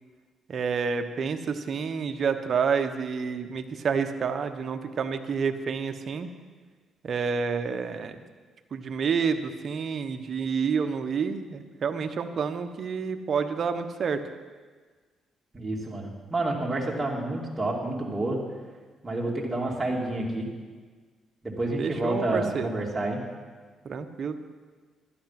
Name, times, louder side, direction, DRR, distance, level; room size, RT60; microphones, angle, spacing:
voice 1, 0.5-6.3 7.0-8.2 8.7-14.2 21.8-22.8 23.8-24.4, right 6 dB, 50° right, 7 dB, 1.0 m, -29 dB
voice 2, 15.5-18.4 19.0-20.5 21.4-23.2, right 2 dB, 20° right, -3 dB, 3.0 m, -29 dB
11.5 x 11.5 x 6.0 m, 1.4 s
cardioid pair, 90°, 0 cm